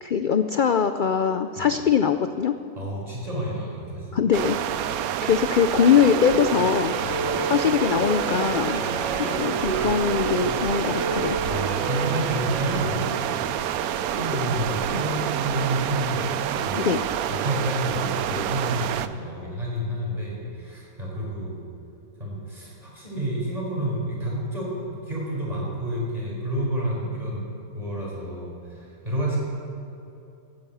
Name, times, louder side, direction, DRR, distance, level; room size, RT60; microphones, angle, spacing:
voice 1, 0.0-2.5 4.1-4.6 5.2-6.9 7.5-8.8 9.2-11.4 16.8-17.0, left 7 dB, 85° left, 9 dB, 0.4 m, -22 dB
voice 2, 2.7-4.5 7.0-7.3 8.8-9.2 11.4-13.7 14.1-16.9 17.3-21.6 22.2-27.5 27.7-29.4, right 1 dB, 25° right, -4 dB, 4.8 m, -30 dB
sound 1, 4.3-19.1, right 10 dB, 85° right, 1.1 m, -28 dB
sound 2, 6.1-12.8, right 2 dB, 70° right, 3.1 m, -31 dB
16.0 x 9.6 x 8.0 m, 2.8 s
omnidirectional pair, 1.5 m